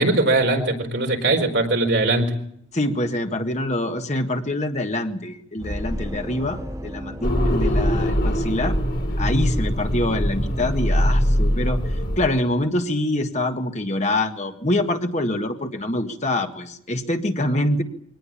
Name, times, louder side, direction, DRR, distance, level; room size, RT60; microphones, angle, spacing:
voice 1, 0.0-2.3, right 2 dB, 60° right, 4 dB, 4.5 m, -20 dB
voice 2, 2.7-8.8 9.2-17.8, left 1 dB, 35° left, 5 dB, 1.7 m, -25 dB
sound 1, 5.6-9.0, equal, 20° right, 2.8 m, -34 dB
sound 2, 7.2-12.3, equal, 50° left, 4.9 m, -22 dB
23.5 x 19.0 x 8.7 m, 0.70 s
head